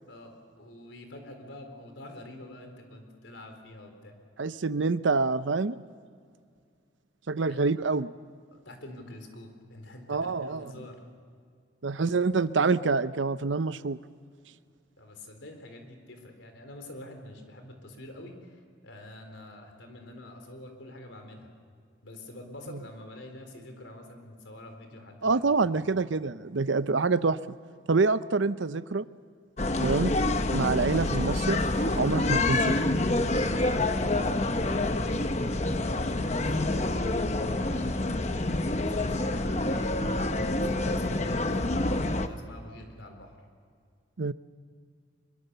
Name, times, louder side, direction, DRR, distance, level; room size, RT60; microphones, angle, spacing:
voice 1, 0.1-4.2 7.5-7.6 8.5-11.0 15.0-21.5 22.0-25.6 34.9-35.2 35.4-38.0 38.3-43.4, left 1 dB, 85° left, 5 dB, 4.1 m, -46 dB
voice 2, 4.4-5.8 7.3-8.1 10.1-10.6 11.8-14.0 25.2-27.4 27.9-29.0 29.8-31.6 32.0-32.8 44.2-44.3, right 4 dB, 80° right, 14 dB, 0.7 m, -26 dB
sound 1, 29.6-42.3, left 2 dB, 35° left, 0.9 m, -27 dB
24.5 x 23.0 x 6.9 m, 2.2 s
head